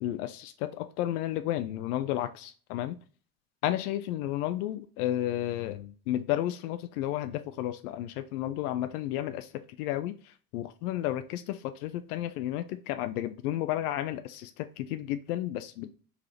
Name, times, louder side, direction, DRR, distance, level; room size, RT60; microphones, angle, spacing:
voice 1, 0.0-3.0 3.6-9.5 9.8-10.1 10.5-15.9, left 13 dB, 75° left, 0.5 m, -32 dB
3.9 x 3.4 x 2.7 m
hypercardioid pair, 70°, 46 cm